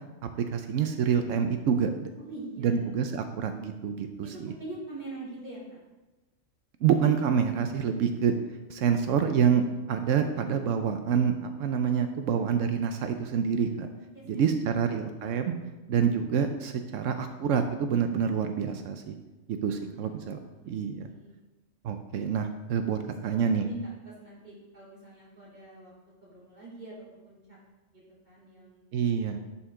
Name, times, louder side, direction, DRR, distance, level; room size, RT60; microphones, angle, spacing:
voice 1, 0.5-2.1 2.6-4.5 6.8-8.3 8.7-9.6 9.9-13.9 14.3-15.6 15.9-19.1 19.5-20.4 20.7-21.1 21.8-23.6 28.9-29.4, right 7 dB, 80° right, 7 dB, 1.0 m, -27 dB
voice 2, 2.2-2.9 4.2-5.8 8.0-8.1 14.1-14.6 19.7-20.1 20.4-20.7 21.0-21.3 23.2-25.9 26.2-26.9 27.2-27.4 27.9-28.9, right 2 dB, 35° right, -8 dB, 3.6 m, -44 dB
11.0 x 5.7 x 3.7 m, 1.1 s
omnidirectional pair, 1.3 m